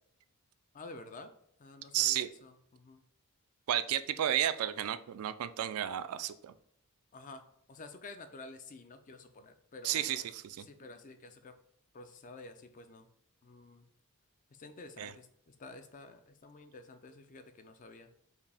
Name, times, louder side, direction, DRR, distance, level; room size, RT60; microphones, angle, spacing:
voice 1, 0.7-1.3 1.6-3.0 7.1-10.3 10.6-11.5 11.9-13.1 13.4-13.9 14.5-18.1, left 3 dB, 35° left, 8 dB, 0.4 m, -50 dB
voice 2, 1.9-2.3 3.7-6.5 9.8-10.7 15.0-15.1, right 11 dB, 70° right, 12 dB, 0.3 m, -32 dB
4.7 x 2.7 x 3.3 m, 0.73 s
head